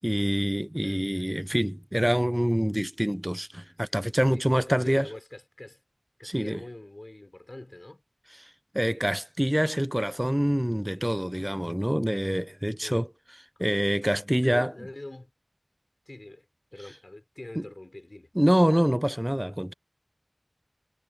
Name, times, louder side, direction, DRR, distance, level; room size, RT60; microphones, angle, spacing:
voice 1, 0.0-5.1 6.2-6.6 8.4-13.1 13.6-14.7 17.6-17.7 18.4-19.7, equal, 10° right, 0.5 m, -26 dB
voice 2, 4.0-5.8 6.2-8.0 12.8-13.0 13.6-13.7 14.3-15.3 16.1-16.5 16.7-18.3, left 1 dB, 50° left, 4.5 m, -43 dB
wide cardioid pair, 40°, 0 cm